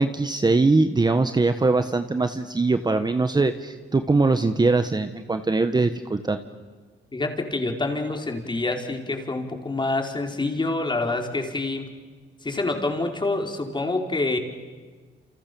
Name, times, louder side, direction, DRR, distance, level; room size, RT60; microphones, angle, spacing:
voice 1, 0.0-6.4, right 3 dB, 20° right, 8 dB, 1.4 m, -22 dB
voice 2, 7.1-12.0 12.4-14.4, left 2 dB, 25° left, 3 dB, 4.7 m, -27 dB
29.0 x 28.5 x 7.1 m, 1.4 s
cardioid pair, 90°, 20 cm